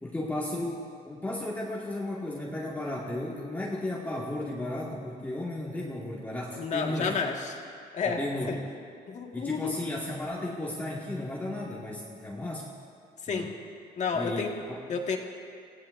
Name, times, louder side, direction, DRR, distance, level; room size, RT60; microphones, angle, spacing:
voice 1, 0.0-7.2 8.0-8.6 9.3-12.7 13.3-13.5 14.1-14.8, left 1 dB, 10° left, -6 dB, 1.9 m, -34 dB
voice 2, 6.6-7.5 7.9-8.2 8.5-8.6 9.1-9.8 13.2-13.5 14.0-14.6 14.9-15.2, left 5 dB, 45° left, 1 dB, 1.8 m, -30 dB
27.0 x 16.5 x 2.6 m, 2.3 s
cardioid pair, 110°, 17 cm